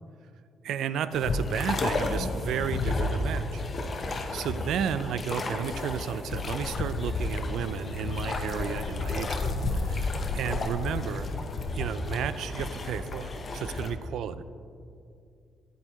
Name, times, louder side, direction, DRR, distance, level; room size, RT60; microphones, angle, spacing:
voice 1, 0.6-3.6 3.9-11.3 11.7-14.4, right 8 dB, 80° right, 14 dB, 0.3 m, -33 dB
sound 1, 1.1-13.9, left 2 dB, 40° left, 0.8 m, -32 dB
sound 2, 6.3-11.7, left 6 dB, 70° left, 0.3 m, -35 dB
8.8 x 8.2 x 2.9 m, 2.3 s
cardioid pair, 90°, 0 cm